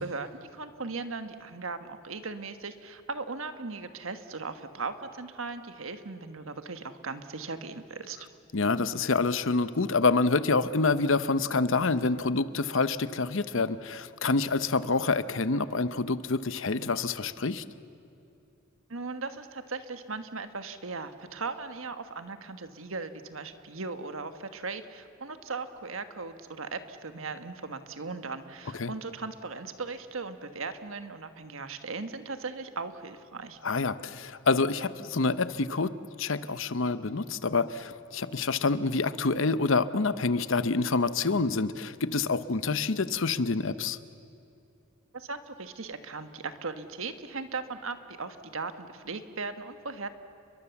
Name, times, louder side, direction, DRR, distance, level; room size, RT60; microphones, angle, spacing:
voice 1, 0.0-8.2 18.9-33.6 45.1-50.1, right 4 dB, 70° right, 9 dB, 1.5 m, -38 dB
voice 2, 8.5-17.6 28.8-28.9 33.6-35.9 36.2-44.0, left 3 dB, 65° left, 14 dB, 0.8 m, -27 dB
30.0 x 22.5 x 7.2 m, 2.8 s
head